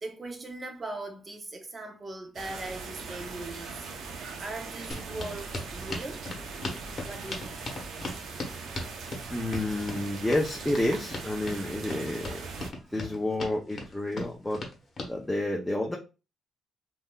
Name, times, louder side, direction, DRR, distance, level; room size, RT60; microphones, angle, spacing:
voice 1, 0.0-3.9 4.4-6.3 7.0-7.6 12.8-13.3, right 2 dB, 30° right, 0.8 m, -40 dB
sound 1, 2.3-12.7, right 4 dB, 75° right, 0.7 m, -40 dB
sound 2, 4.9-15.1, left 2 dB, 40° left, 1.0 m, -38 dB
voice 2, 9.3-12.4 12.9-14.7 15.0-16.0, left 1 dB, 10° left, 0.6 m, -30 dB
3.5 x 2.6 x 2.3 m
cardioid pair, 90°, 0 cm